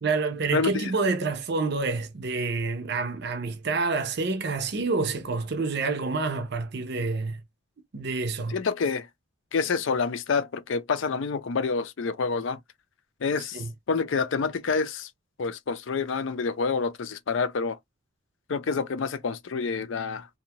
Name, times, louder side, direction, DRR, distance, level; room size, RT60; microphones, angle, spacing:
voice 1, 0.0-7.4 7.9-8.6 13.5-13.7, right 3 dB, 50° right, 0.6 m, -28 dB
voice 2, 0.5-0.9 8.5-9.1 9.5-12.6 13.2-13.6 13.9-15.1 15.4-17.8 18.5-20.3, left 5 dB, 65° left, 0.4 m, -27 dB
2.6 x 2.2 x 2.8 m
head